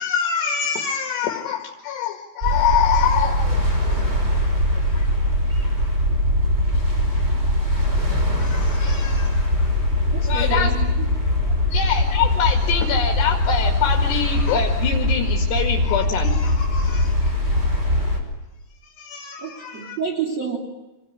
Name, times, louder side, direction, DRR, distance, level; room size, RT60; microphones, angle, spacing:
voice 1, 0.0-4.0 4.9-5.1 7.7-7.9 8.4-9.5 10.2-10.7 11.7-17.3 19.0-20.0, left 7 dB, 70° left, 2 dB, 4.1 m, -25 dB
sound 1, 2.4-18.2, left 1 dB, 15° right, 5.2 m, -21 dB
voice 2, 10.1-11.1 11.6-11.7 19.4-20.6, right 6 dB, 40° right, 0 dB, 3.7 m, -29 dB
27.5 x 19.5 x 9.8 m, 1.1 s
omnidirectional pair, 5.2 m